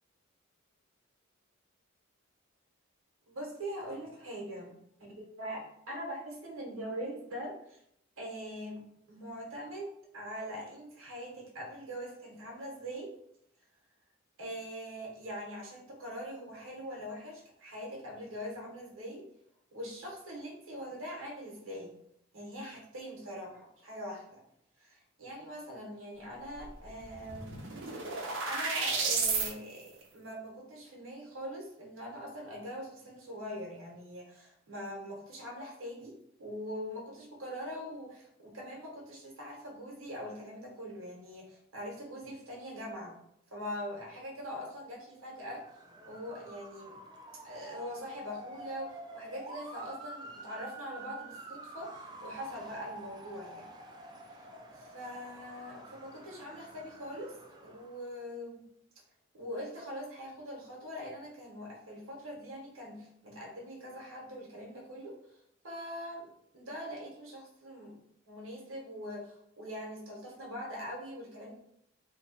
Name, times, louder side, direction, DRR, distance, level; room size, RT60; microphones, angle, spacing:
voice 1, 3.3-4.7 5.0-7.8 8.2-13.1 14.4-19.3 19.7-22.0 22.3-24.4 24.8-43.2 43.5-47.0 47.4-53.7 54.3-54.4 54.7-58.7 59.3-65.4 65.6-68.0 68.3-71.5, equal, 85° right, -2 dB, 1.1 m, -43 dB
sound 1, 26.6-26.7 27.0-29.5, right 4 dB, 65° right, 0.7 m, -32 dB
Motor vehicle (road) / Siren, 45.4-58.1, right 2 dB, 20° right, 0.3 m, -48 dB
2.9 x 2.3 x 4.2 m, 0.73 s
head